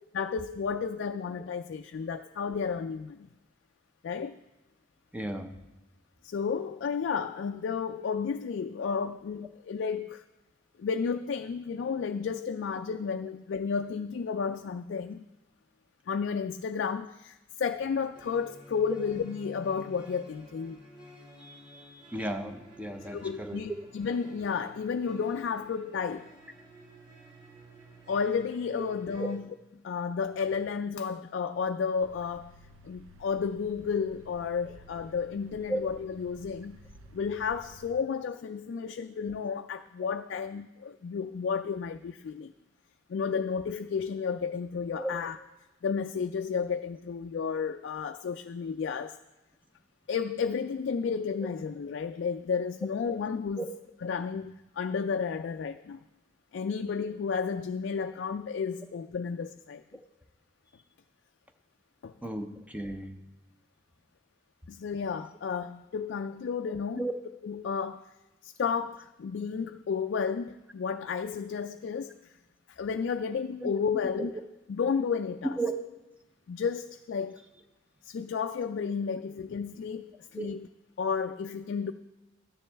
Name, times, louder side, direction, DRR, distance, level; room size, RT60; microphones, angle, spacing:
voice 1, 0.1-3.3 4.0-4.4 6.2-10.2 10.8-15.2 16.1-20.8 23.1-26.3 28.1-29.5 29.8-32.5 32.8-36.8 37.1-42.5 43.1-45.4 45.8-49.2 50.1-53.7 54.0-56.0 56.5-59.8 62.0-62.1 64.7-67.1 67.4-68.0 68.4-72.1 72.7-74.4 74.7-75.6 76.5-77.4 78.0-80.7 81.0-81.9, left 6 dB, 55° left, 6 dB, 0.3 m, -32 dB
voice 2, 5.1-5.6 21.4-23.6 29.2-29.3 35.7-35.8 45.0-45.2 53.6-53.7 62.2-63.2 67.0-67.1 73.6-73.7 74.2-74.3 75.6-75.7 80.4-80.5, right 2 dB, 5° right, 6 dB, 0.6 m, -35 dB
sound 1, 18.1-29.4, right 1 dB, 25° right, 2.7 m, -52 dB
sound 2, 32.0-37.9, equal, 75° right, 0.7 m, -54 dB
12.5 x 9.9 x 3.4 m, 1.1 s
head